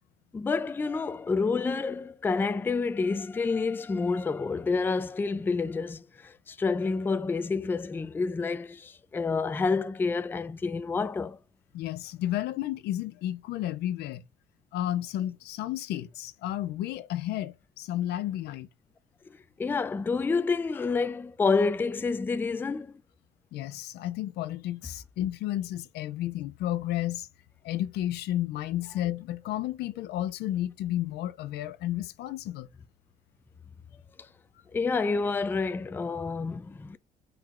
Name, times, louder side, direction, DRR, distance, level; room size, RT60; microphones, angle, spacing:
voice 1, 0.3-11.4 19.3-22.9 34.2-34.3 34.7-37.0, left 4 dB, 10° left, 0.3 m, -29 dB
voice 2, 11.7-14.2 14.7-18.7 23.5-27.3 27.6-32.7, left 13 dB, 80° left, 0.5 m, -32 dB
4.5 x 2.4 x 3.7 m
cardioid pair, 110°, 17 cm